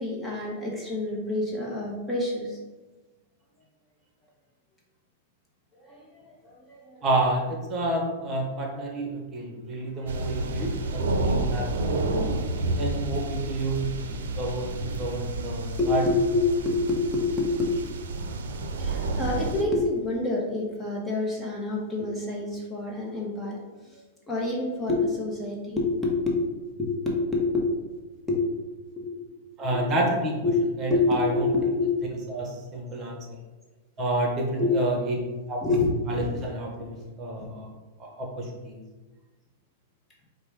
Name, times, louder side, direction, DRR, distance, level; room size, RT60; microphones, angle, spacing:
voice 1, 0.0-2.6 5.7-7.0 15.8-18.0 18.8-23.6 23.9-26.4 26.8-27.7 28.3-28.5 29.0-29.4 29.7-29.8 30.4-30.6 30.9-31.9 34.6-34.7 35.6-35.9 36.3-36.4 36.8-36.9, left 3 dB, 10° left, -4 dB, 1.0 m, -27 dB
voice 2, 7.0-11.7 11.9-12.0 12.8-16.0 29.6-30.4 30.8-31.5 32.3-33.2 34.0-35.2 35.5-35.6 36.1-37.7 38.0-38.8, right 1 dB, 30° right, 0 dB, 1.0 m, -29 dB
sound 1, 10.1-19.6, right 2 dB, 80° right, 0.5 m, -30 dB
4.9 x 2.2 x 4.8 m, 1.2 s
hypercardioid pair, 130°, 0 cm